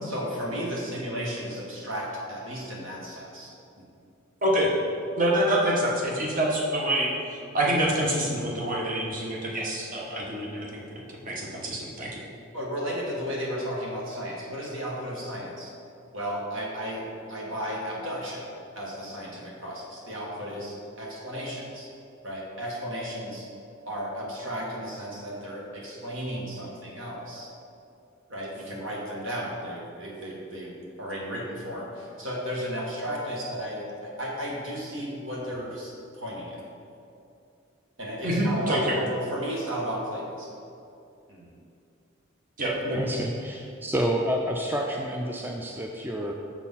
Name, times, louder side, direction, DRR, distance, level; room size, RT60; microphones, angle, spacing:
voice 1, 0.0-3.5 3.8-3.9 12.5-15.7 16.1-17.0 17.3-18.5 18.7-21.9 22.2-23.5 23.9-27.5 28.3-30.7 31.0-36.6 38.0-40.6 41.3-41.5, equal, 70° right, -4 dB, 1.7 m, -34 dB
voice 2, 4.4-4.7 5.2-7.1 7.5-10.8 11.1-12.2 38.2-38.9 42.6-43.0, right 1 dB, 45° right, -3 dB, 1.2 m, -26 dB
voice 3, 43.0-46.3, equal, 10° right, 0 dB, 0.4 m, -29 dB
7.1 x 4.4 x 5.5 m, 2.6 s
head